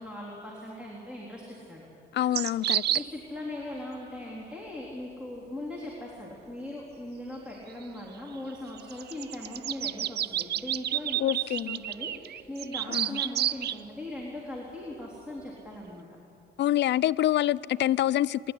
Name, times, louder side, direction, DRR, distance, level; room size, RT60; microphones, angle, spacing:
voice 1, 0.0-1.9 2.9-16.1, left 1 dB, 5° right, 3.6 m, -40 dB
voice 2, 2.1-2.8 11.2-11.8 12.9-13.1 16.6-18.5, left 13 dB, 65° left, 0.4 m, -26 dB
sound 1, 2.3-3.1 7.8-7.9 8.8-13.8, right 11 dB, 55° right, 0.5 m, -30 dB
24.5 x 11.0 x 10.0 m
cardioid pair, 90°, 20 cm